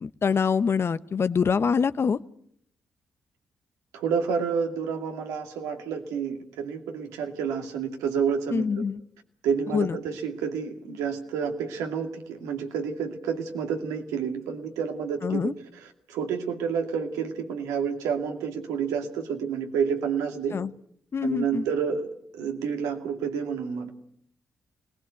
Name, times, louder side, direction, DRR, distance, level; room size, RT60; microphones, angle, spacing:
voice 1, 0.0-2.2 8.5-9.0 9.7-10.0 15.2-15.5 20.5-20.7 21.1-21.6, left 6 dB, 50° left, 14 dB, 1.0 m, -25 dB
voice 2, 3.9-8.8 9.4-15.6 15.8-20.6 21.2-22.1 22.3-23.9, right 6 dB, 80° right, 4 dB, 2.4 m, -29 dB
25.0 x 19.5 x 8.2 m, 0.68 s
hypercardioid pair, 40°, 6 cm